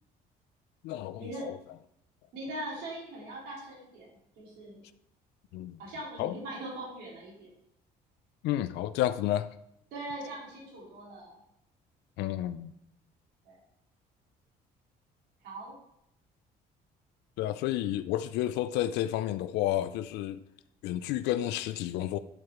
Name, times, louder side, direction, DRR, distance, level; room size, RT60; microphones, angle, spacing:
voice 1, 0.8-1.6 5.5-5.8 6.2-6.4 8.4-9.5 12.2-12.7 17.4-20.4 20.8-22.2, left 13 dB, 85° left, 0.4 m, -31 dB
voice 2, 2.3-4.1 4.4-4.8 5.8-7.5 9.9-11.4 13.4-13.6 15.4-15.7, right 1 dB, 80° right, 3.9 m, -41 dB
10.5 x 4.8 x 4.6 m
cardioid pair, 110°, 17 cm